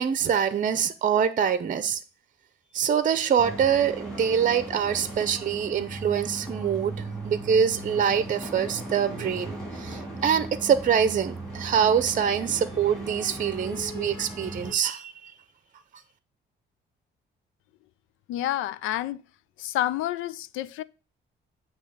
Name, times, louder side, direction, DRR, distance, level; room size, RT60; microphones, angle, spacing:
voice 1, 0.0-2.0 2.7-6.9 7.2-15.3, right 8 dB, 40° right, 0.7 m, -25 dB
sound 1, 3.4-14.7, right 2 dB, 5° left, 3.4 m, -37 dB
voice 2, 18.3-19.2 19.6-20.8, left 13 dB, 90° left, 0.4 m, -29 dB
8.4 x 3.0 x 5.6 m
cardioid pair, 90°, 20 cm